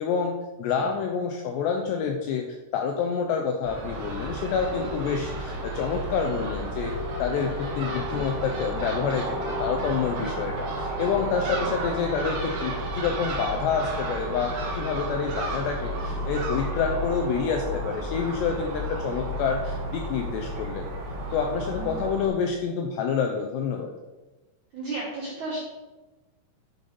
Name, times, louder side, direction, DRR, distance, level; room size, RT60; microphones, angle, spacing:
voice 1, 0.0-6.9 7.2-9.3 9.6-20.9 21.3-23.9, left 6 dB, 90° left, 3 dB, 2.5 m, -28 dB
Crow / Gull seagull, 3.6-22.3, right 1 dB, 85° right, 1.4 m, -32 dB
voice 2, 4.7-5.1 8.0-8.2 11.5-11.8 18.9-19.0 21.7-22.1 24.7-25.6, right 2 dB, 65° right, -4 dB, 1.9 m, -36 dB
11.0 x 5.4 x 5.5 m, 1.1 s
omnidirectional pair, 5.7 m